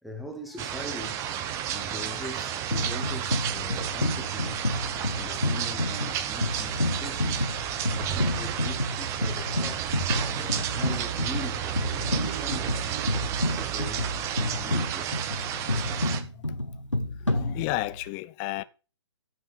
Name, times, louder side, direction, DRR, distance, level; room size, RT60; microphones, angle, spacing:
voice 1, 0.0-4.6 5.1-7.4 7.9-12.8 13.1-15.1 15.9-16.0 17.2-17.3 18.6-18.7, left 1 dB, ahead, 1.4 m, -42 dB
sound 1, 0.6-16.2, right 10 dB, 20° right, 0.9 m, -32 dB
sound 2, 2.7-18.1, left 1 dB, 90° left, 1.8 m, -30 dB
voice 2, 15.5-16.6 17.0-18.6, left 20 dB, 20° left, 0.4 m, -34 dB
14.5 x 6.3 x 3.7 m
figure-of-eight pair, 130°, 15 cm